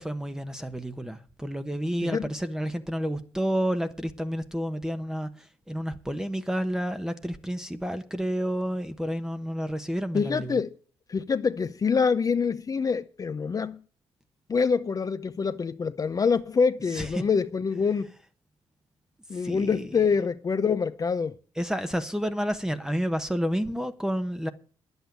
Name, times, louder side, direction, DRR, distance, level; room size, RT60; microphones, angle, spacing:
voice 1, 0.0-10.6 16.9-17.2 19.3-19.8 21.6-24.5, equal, 5° right, 1.0 m, -30 dB
voice 2, 10.1-10.7 11.1-13.8 14.5-18.1 19.3-21.3, left 5 dB, 35° left, 0.7 m, -25 dB
10.0 x 8.1 x 9.3 m
cardioid pair, 85°, 10 cm